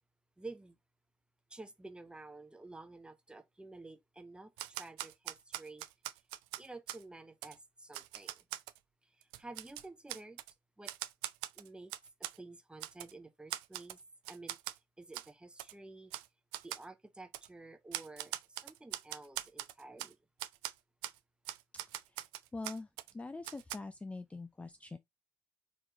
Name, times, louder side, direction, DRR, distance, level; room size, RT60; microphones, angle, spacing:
voice 1, 0.4-0.8 1.5-5.8 6.6-8.4 9.0-10.4 10.8-10.9 11.5-11.9 12.3-14.0 14.3-14.6 15.0-16.1 16.6-20.2, right 2 dB, 10° right, 0.9 m, -51 dB
Typewriter, 4.6-7.0 7.4-7.6 7.9-8.8 9.2-10.5 10.9-12.4 12.8-13.1 13.5-14.0 14.3-14.8 15.1-15.3 15.6-15.7 16.1-16.3 16.5-16.9 17.3-17.5 17.9-20.1 20.4-20.7 21.0-21.2 21.5-23.1 23.4-23.8, right 15 dB, 60° right, 0.4 m, -42 dB
voice 2, 22.5-22.9 23.1-25.0, left 3 dB, 15° left, 0.4 m, -43 dB
4.5 x 3.7 x 3.0 m
figure-of-eight pair, 50°, 10 cm